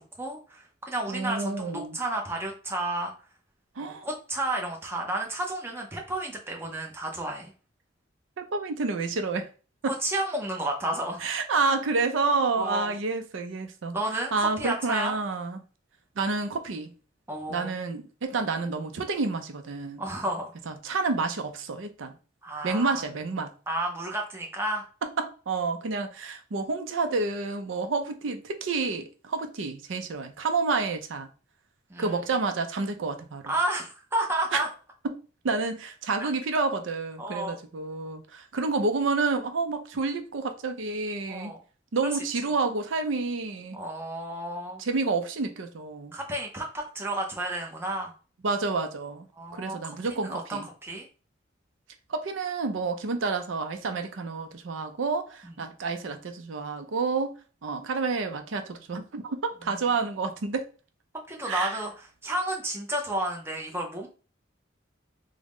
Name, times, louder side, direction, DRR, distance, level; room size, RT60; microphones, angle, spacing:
voice 1, 0.0-3.1 3.8-7.5 9.9-11.2 12.6-12.9 13.9-15.2 17.3-17.7 20.0-20.5 22.4-23.0 23.7-24.9 31.9-32.2 33.5-34.7 36.2-36.3 37.2-37.6 41.3-41.6 42.0-42.1 43.7-44.8 46.1-48.1 49.4-49.9 50.2-51.1 55.4-55.5 61.3-64.1, right 1 dB, 10° right, 0.6 m, -31 dB
voice 2, 1.1-2.0 3.8-4.1 8.4-9.5 9.8-9.9 11.2-14.0 14.3-15.6 16.2-16.9 17.5-20.0 20.7-22.1 22.6-23.5 25.0-31.3 32.0-33.5 34.5-34.6 35.0-35.2 35.4-41.5 41.9-43.8 44.8-46.1 48.4-49.3 49.5-50.7 52.1-57.4 57.6-60.7 61.4-61.7, right 4 dB, 75° right, 0.5 m, -29 dB
3.6 x 2.1 x 3.5 m
head